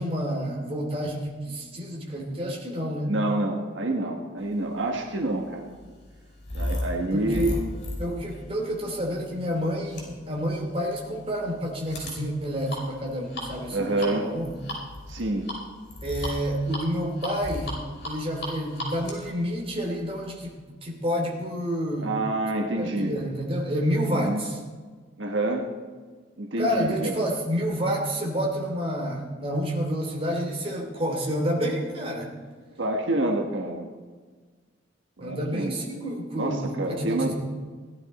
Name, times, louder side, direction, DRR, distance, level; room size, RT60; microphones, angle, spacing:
voice 1, 0.0-3.1 7.1-7.6 8.0-14.6 16.0-17.7 18.0-22.1 22.8-24.6 26.6-32.3 35.2-37.3, equal, 30° right, 0 dB, 2.7 m, -29 dB
voice 2, 3.1-5.7 6.5-7.5 13.7-14.3 15.1-15.5 22.0-23.2 24.1-24.4 25.2-25.7 26.4-27.3 32.8-33.9 35.2-35.7 36.4-37.3, right 2 dB, 80° right, 2 dB, 1.4 m, -27 dB
sound 1, 4.8-20.5, left 1 dB, 65° left, 5.1 m, -36 dB
17.0 x 11.5 x 4.2 m, 1.4 s
head